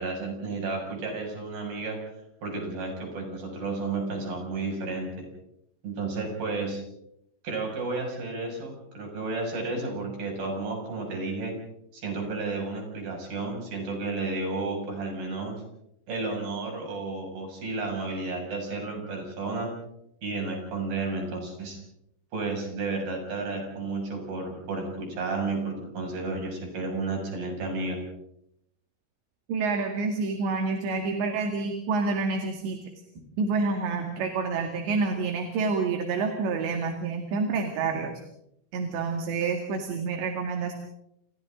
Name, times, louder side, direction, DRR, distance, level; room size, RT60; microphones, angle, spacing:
voice 1, 0.0-2.0 2.4-5.3 5.8-6.8 7.4-11.6 11.9-15.5 16.1-19.7 20.2-21.8 22.3-28.0, right 3 dB, 50° right, 1 dB, 8.2 m, -32 dB
voice 2, 29.5-32.8 33.4-38.2 38.7-40.7, right 4 dB, 70° right, 4 dB, 4.2 m, -28 dB
29.5 x 28.5 x 3.8 m, 0.77 s
omnidirectional pair, 5.4 m